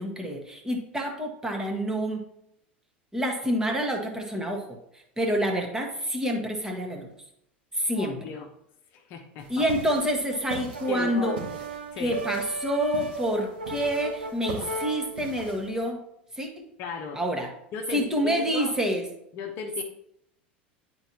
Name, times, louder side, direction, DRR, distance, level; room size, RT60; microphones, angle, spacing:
voice 1, 0.0-2.3 3.1-4.8 5.2-7.1 7.7-8.2 9.5-11.3 12.0-16.0 16.4-16.6 17.2-17.5 17.9-19.0, equal, 10° right, 1 dB, 1.4 m, -28 dB
voice 2, 7.9-8.5 8.9-9.7 10.9-11.4 11.9-12.2 16.8-17.2 17.7-18.7 19.3-19.8, left 5 dB, 45° left, 3 dB, 0.9 m, -36 dB
sound 1, 9.4-15.8, right 3 dB, 65° right, 1.9 m, -42 dB
Brass instrument, 9.7-15.1, right 2 dB, 85° right, 0.8 m, -36 dB
10.5 x 4.4 x 2.9 m, 0.76 s
figure-of-eight pair, 80°, 6 cm